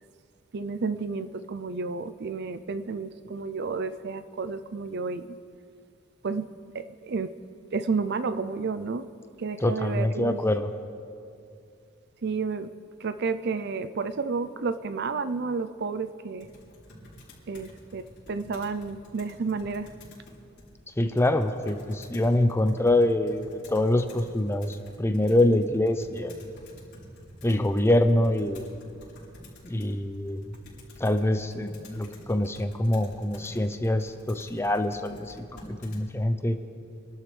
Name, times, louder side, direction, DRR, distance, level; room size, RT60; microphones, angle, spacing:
voice 1, 0.5-5.4 6.2-6.5 6.7-7.3 7.7-9.1 9.4-10.4 12.2-12.7 13.0-16.5 17.5-19.9, right 4 dB, 55° right, 12 dB, 0.5 m, -31 dB
voice 2, 9.6-10.7 21.0-26.4 27.4-28.7 29.6-30.6 31.0-36.6, left 1 dB, 10° left, 8 dB, 0.6 m, -25 dB
Computer keyboard, 16.4-36.0, left 1 dB, 55° left, 4.6 m, -49 dB
25.5 x 12.0 x 3.4 m, 2.5 s
head